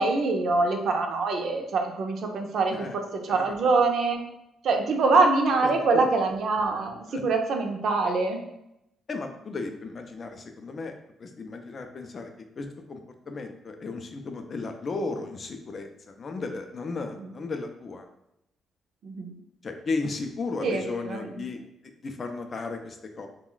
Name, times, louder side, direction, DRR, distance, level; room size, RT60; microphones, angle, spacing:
voice 1, 0.0-3.0 3.3-4.2 4.6-8.4 19.0-19.3 20.6-21.3, right 3 dB, 65° right, 3 dB, 0.4 m, -24 dB
voice 2, 5.6-6.1 7.1-7.2 9.1-10.9 11.2-13.0 13.3-18.1 19.6-21.6 22.0-23.3, left 3 dB, 45° left, 5 dB, 0.3 m, -35 dB
2.3 x 2.1 x 3.8 m, 0.83 s
cardioid pair, 90°, 0 cm